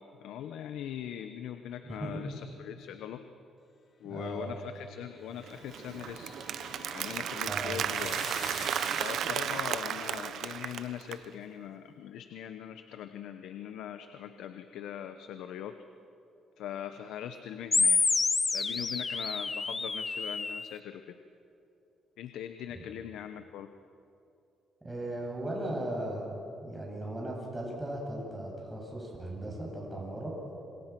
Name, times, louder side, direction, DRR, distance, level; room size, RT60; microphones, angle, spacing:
voice 1, 0.0-3.3 4.0-6.3 6.9-8.3 9.0-15.8 16.6-18.0 18.5-21.2 22.2-23.7, left 10 dB, 85° left, 8 dB, 1.0 m, -41 dB
voice 2, 1.8-2.2 4.1-4.5 7.5-7.8 24.8-26.3 26.6-30.3, right 1 dB, 15° right, -2 dB, 7.8 m, -37 dB
sound 1, 5.3-9.9, left 5 dB, 45° left, 2.7 m, -46 dB
Applause, 5.4-11.2, right 9 dB, 70° right, 1.0 m, -34 dB
sound 2, 17.7-20.7, left 4 dB, 30° left, 0.6 m, -28 dB
29.0 x 26.0 x 6.1 m, 2.7 s
cardioid pair, 90°, 0 cm